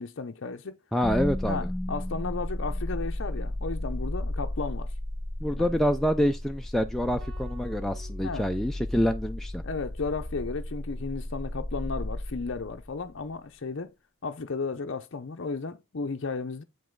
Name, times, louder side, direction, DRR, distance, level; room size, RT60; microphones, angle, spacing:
voice 1, 0.0-0.8 1.5-4.9 5.5-5.8 8.2-8.5 9.6-13.9 14.2-16.6, left 4 dB, 55° left, 0.6 m, -34 dB
voice 2, 0.9-1.7 5.4-9.6, equal, ahead, 0.4 m, -27 dB
sound 1, 1.0-13.1, left 1 dB, 25° left, 1.1 m, -34 dB
sound 2, 7.2-9.5, right 5 dB, 70° right, 3.3 m, -53 dB
8.0 x 5.4 x 3.8 m
head